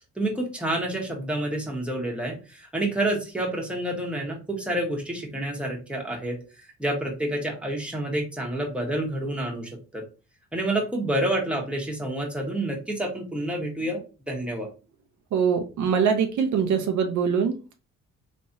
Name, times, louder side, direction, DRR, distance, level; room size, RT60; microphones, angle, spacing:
voice 1, 0.2-6.4 6.8-10.0 10.5-14.7, right 1 dB, 5° right, -1 dB, 1.3 m, -28 dB
voice 2, 15.3-17.7, right 6 dB, 75° right, 4 dB, 0.8 m, -23 dB
3.4 x 3.2 x 2.7 m, 0.32 s
cardioid pair, 90°, 30 cm